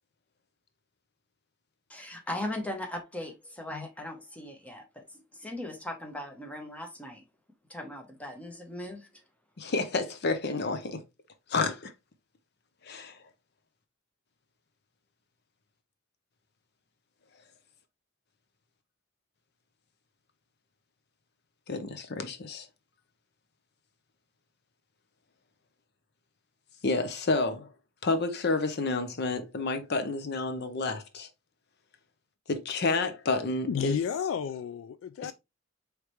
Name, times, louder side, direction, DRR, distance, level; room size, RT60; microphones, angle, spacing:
voice 1, 1.9-7.2 7.7-9.1, left 1 dB, 5° left, 1.0 m, -39 dB
voice 2, 9.6-11.0 11.5-11.9 12.8-13.2 21.7-22.7 26.8-27.7 28.0-31.3 32.5-34.0 35.2-35.3, left 3 dB, 55° left, 0.7 m, -30 dB
voice 3, 33.7-35.3, left 8 dB, 70° left, 0.3 m, -31 dB
4.8 x 3.3 x 3.0 m
head